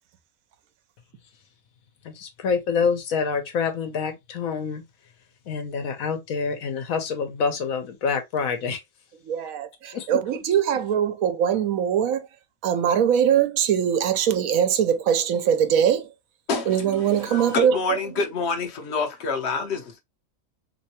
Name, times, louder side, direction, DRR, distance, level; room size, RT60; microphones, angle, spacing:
voice 1, 2.0-4.8 5.5-8.8 9.9-10.2, left 5 dB, 80° left, 1.2 m, -27 dB
voice 2, 9.2-12.3 12.6-16.1 16.7-17.8, right 8 dB, 85° right, 1.1 m, -22 dB
voice 3, 16.5-20.0, left 3 dB, 60° left, 0.9 m, -27 dB
3.2 x 3.0 x 2.8 m
omnidirectional pair, 1.4 m